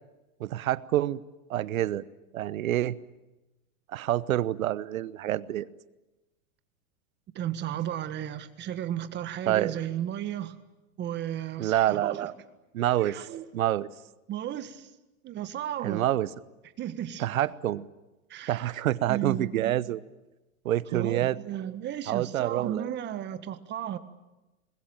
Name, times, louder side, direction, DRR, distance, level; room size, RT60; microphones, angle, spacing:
voice 1, 0.4-1.2 1.5-2.0 2.3-3.0 3.9-5.7 9.5-9.7 11.6-12.3 12.7-13.1 13.5-13.9 15.8-16.3 17.2-17.8 18.5-20.0 20.6-21.4 22.1-22.9, right 13 dB, 80° right, 17 dB, 1.1 m, -27 dB
voice 2, 7.4-10.6 11.0-12.3 13.0-13.5 14.3-14.9 15.2-16.0 16.8-17.3 18.3-18.7 19.1-19.6 20.9-24.0, right 11 dB, 25° right, 10 dB, 1.7 m, -34 dB
26.5 x 21.5 x 9.0 m, 1.0 s
supercardioid pair, 140°, 41 cm